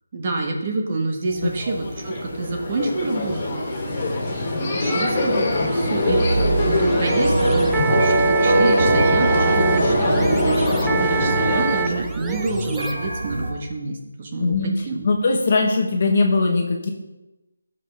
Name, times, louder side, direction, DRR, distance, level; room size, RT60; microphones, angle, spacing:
voice 1, 0.1-4.0 4.7-6.2 6.6-15.0, right 3 dB, 30° right, 1 dB, 1.2 m, -28 dB
sound 1, 1.3-13.5, right 2 dB, 60° right, 1.9 m, -24 dB
sound 2, 1.6-11.8, left 2 dB, 25° left, 2.4 m, -23 dB
sound 3, 5.6-13.3, right 8 dB, 5° right, 0.4 m, -29 dB
voice 2, 14.4-16.9, left 3 dB, 40° left, 1 dB, 1.1 m, -20 dB
14.0 x 5.5 x 3.4 m, 0.99 s
figure-of-eight pair, 165°, 0 cm